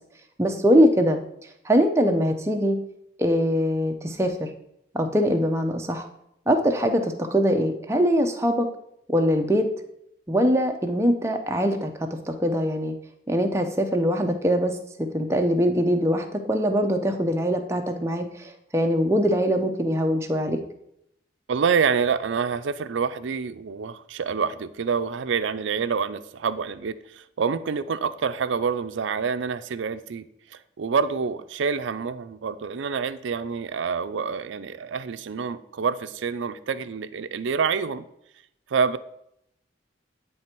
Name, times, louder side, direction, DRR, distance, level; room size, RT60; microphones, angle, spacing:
voice 1, 0.4-1.2 1.6-2.8 3.2-4.5 4.9-6.1 6.5-8.7 9.1-9.7 10.3-12.9 13.3-20.6, equal, 15° right, 4 dB, 0.6 m, -22 dB
voice 2, 21.5-30.2 30.5-38.1 38.7-39.0, right 6 dB, 75° right, 12 dB, 0.4 m, -27 dB
9.3 x 3.3 x 4.4 m, 0.76 s
head